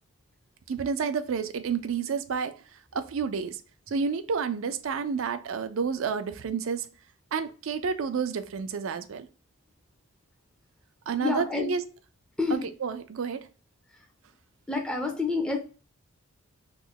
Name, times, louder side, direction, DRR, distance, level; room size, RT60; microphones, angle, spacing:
voice 1, 0.7-2.5 2.9-3.6 3.9-6.9 7.3-9.3 11.1-11.8 12.8-13.5, right 6 dB, 65° right, 0.4 m, -30 dB
voice 2, 11.2-11.7 12.4-12.7 13.9-14.0 14.7-15.6, left 4 dB, 5° left, 0.4 m, -28 dB
3.0 x 2.1 x 3.8 m
head